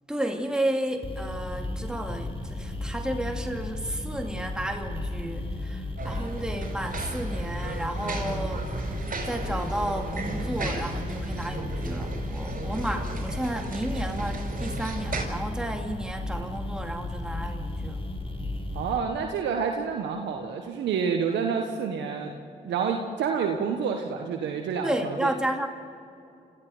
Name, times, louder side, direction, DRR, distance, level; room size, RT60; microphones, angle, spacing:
voice 1, 0.1-9.0 9.2-18.0 24.8-25.7, right 1 dB, 5° right, 3 dB, 2.6 m, -32 dB
sound 1, 1.0-19.0, left 2 dB, 30° left, 4.2 m, -34 dB
sound 2, 6.0-15.2, right 3 dB, 50° right, 5.3 m, -35 dB
voice 2, 18.7-22.3 22.6-25.3, right 6 dB, 80° right, 3 dB, 1.4 m, -28 dB
28.0 x 15.0 x 7.9 m, 2.6 s
supercardioid pair, 45°, 18 cm